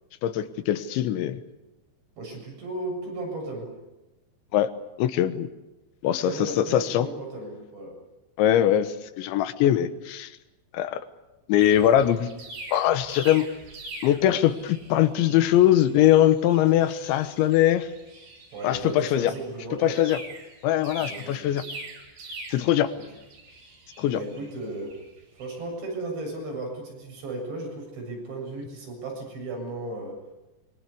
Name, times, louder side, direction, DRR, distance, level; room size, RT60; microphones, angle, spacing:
voice 1, 0.2-1.4 4.5-4.7 5.0-5.5 6.0-7.1 8.4-10.3 10.7-11.0 11.5-12.3 12.7-13.5 14.0-17.9 18.6-19.3 19.8-20.2 20.6-21.6 22.5-22.9 24.0-24.2, left 12 dB, 90° left, 11 dB, 3.6 m, -22 dB
voice 2, 2.2-3.7 6.2-8.0 18.5-20.1 21.0-21.6 24.1-24.9 25.4-30.2, right 2 dB, 80° right, 1 dB, 9.7 m, -35 dB
sound 1, 11.6-25.6, right 2 dB, 65° right, 8.4 m, -44 dB
26.0 x 23.0 x 8.4 m, 1.0 s
omnidirectional pair, 5.1 m